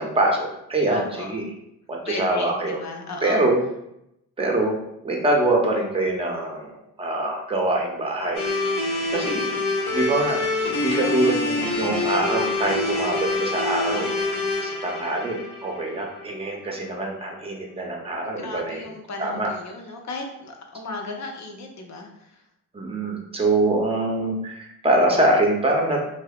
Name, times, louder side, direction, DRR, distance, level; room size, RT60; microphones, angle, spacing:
voice 1, 0.0-1.4 1.9-2.8 3.2-3.6 4.4-4.8 5.0-8.5 9.1-9.5 9.9-10.4 10.8-14.1 14.6-18.8 19.2-19.5 22.7-26.0, right 2 dB, 15° right, 0 dB, 0.6 m, -24 dB
voice 2, 0.9-1.3 2.1-3.5 11.0-11.4 18.2-22.5, left 3 dB, 45° left, 2 dB, 0.6 m, -35 dB
sound 1, 8.3-16.5, left 2 dB, 80° left, 0.8 m, -26 dB
2.7 x 2.1 x 2.4 m, 0.80 s
supercardioid pair, 55°, 39 cm